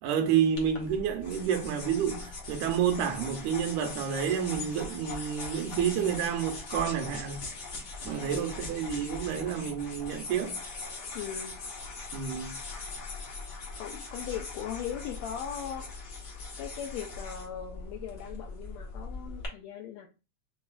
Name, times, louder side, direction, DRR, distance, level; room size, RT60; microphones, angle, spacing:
voice 1, 0.0-7.4 8.1-10.6 12.1-12.6, right 8 dB, 85° right, 2.1 m, -29 dB
sound 1, 0.6-19.5, left 3 dB, 60° left, 1.1 m, -41 dB
voice 2, 8.0-8.4 11.1-11.6 13.8-16.0 16.6-20.1, left 9 dB, 80° left, 1.5 m, -39 dB
5.2 x 3.0 x 2.4 m
omnidirectional pair, 3.5 m